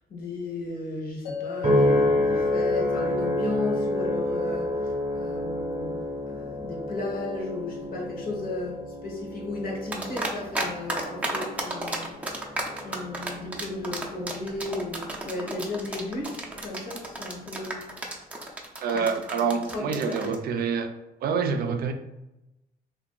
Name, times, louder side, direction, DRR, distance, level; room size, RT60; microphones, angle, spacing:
voice 1, 0.1-17.9 18.9-19.0 19.5-20.3, left 2 dB, 55° left, -1 dB, 1.0 m, -35 dB
sound 1, 1.3-14.4, left 7 dB, 85° left, 0.9 m, -39 dB
sound 2, 1.6-16.1 16.6-17.1, left 1 dB, 35° right, 0.8 m, -30 dB
sound 3, 9.9-10.6 10.9-20.4, right 2 dB, 10° right, 0.5 m, -32 dB
voice 2, 18.8-20.9 21.2-21.9, right 5 dB, 60° right, 6 dB, 0.4 m, -26 dB
2.9 x 2.6 x 3.8 m, 0.94 s
cardioid pair, 140°, 17 cm